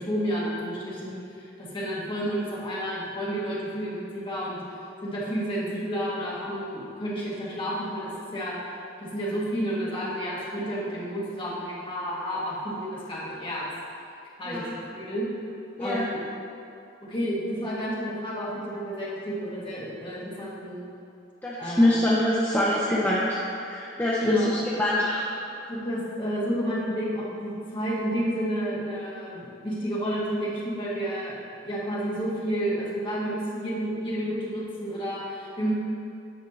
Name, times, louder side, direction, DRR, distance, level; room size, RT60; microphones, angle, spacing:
voice 1, 0.0-4.6 5.0-8.5 9.0-13.7 14.4-14.6 14.9-15.2 15.8-16.2 17.0-20.8 21.6-21.9 24.2-24.5 25.7-35.7, equal, 25° left, -7 dB, 1.7 m, -30 dB
voice 2, 21.4-25.3, left 1 dB, 10° left, -7 dB, 0.6 m, -24 dB
8.3 x 6.0 x 4.0 m, 2.6 s
head